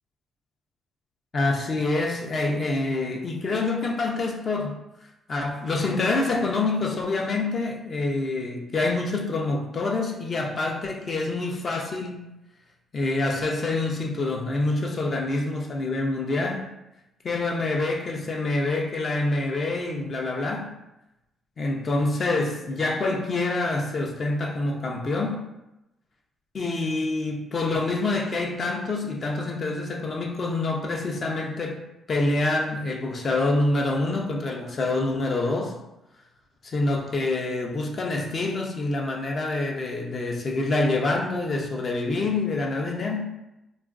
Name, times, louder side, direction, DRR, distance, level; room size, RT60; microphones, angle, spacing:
voice 1, 1.3-4.8 5.3-12.3 12.9-16.6 17.2-20.7 21.6-25.4 26.5-31.8 32.1-35.7 36.6-43.3, left 2 dB, 45° left, 1 dB, 0.5 m, -26 dB
2.9 x 2.4 x 2.4 m, 0.92 s
cardioid pair, 90°, 0 cm